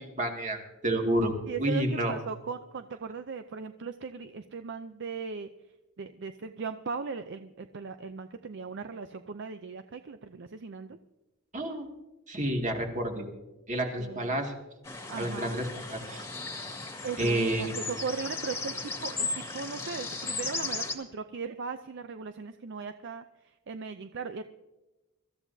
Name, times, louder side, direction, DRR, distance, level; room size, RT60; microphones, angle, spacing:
voice 1, 0.2-2.2 11.5-11.9 12.3-13.3 13.7-14.5 15.2-16.3 17.2-17.7, right 1 dB, 35° right, 2 dB, 2.2 m, -30 dB
voice 2, 1.5-5.5 6.0-11.0 14.0-14.4 15.1-15.6 17.0-24.4, right 5 dB, 60° right, 10 dB, 0.5 m, -38 dB
sound 1, 14.9-21.0, left 3 dB, 15° left, 1.9 m, -36 dB
24.0 x 14.0 x 2.7 m, 1.1 s
head